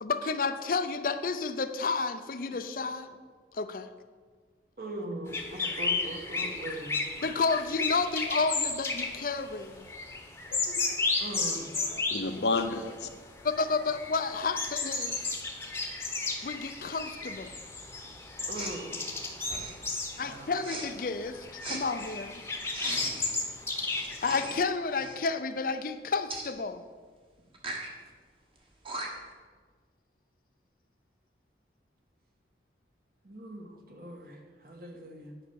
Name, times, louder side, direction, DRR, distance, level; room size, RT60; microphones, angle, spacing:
voice 1, 0.0-3.2 3.5-3.9 7.2-9.9 13.4-15.4 16.4-17.5 20.2-22.4 24.1-26.8, left 4 dB, 50° left, 0.5 m, -31 dB
voice 2, 4.8-7.0 11.2-11.7 18.5-19.0 20.2-20.5 33.2-34.4 34.6-35.3, right 1 dB, 50° right, 1.5 m, -40 dB
sound 1, 5.3-13.1 13.4-24.5, left 3 dB, 15° left, 1.0 m, -34 dB
voice 3, 10.5-11.1 11.5-13.1, left 3 dB, 70° left, 0.8 m, -33 dB
Respiratory sounds, 18.5-18.8 19.4-19.9 20.6-20.9 21.6-21.8 22.7-23.4 24.2-24.6 24.9-25.2 26.3-26.5 27.5-27.9 28.6-28.7 28.8-29.3, right 2 dB, 30° right, 1.3 m, -39 dB
9.7 x 5.8 x 7.0 m
head